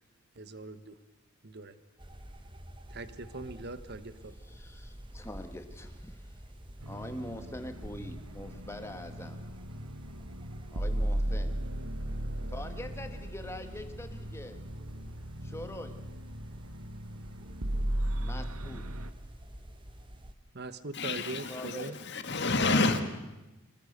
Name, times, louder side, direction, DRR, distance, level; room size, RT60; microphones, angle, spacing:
voice 1, 0.3-1.0 1.4-1.8 2.9-4.4 20.5-22.0, right 2 dB, 45° right, 1.2 m, -41 dB
sound 1, 2.0-20.3, equal, 20° right, 1.3 m, -49 dB
voice 2, 4.5-6.4 6.8-9.4 10.7-11.5 12.5-14.6 15.4-15.9 18.2-18.9 21.5-22.0, left 1 dB, 10° left, 1.5 m, -43 dB
sound 2, 6.8-19.1, right 1 dB, 85° right, 1.3 m, -36 dB
voice 3, 20.9-23.0, left 3 dB, 50° left, 1.9 m, -29 dB
25.5 x 20.0 x 6.7 m
head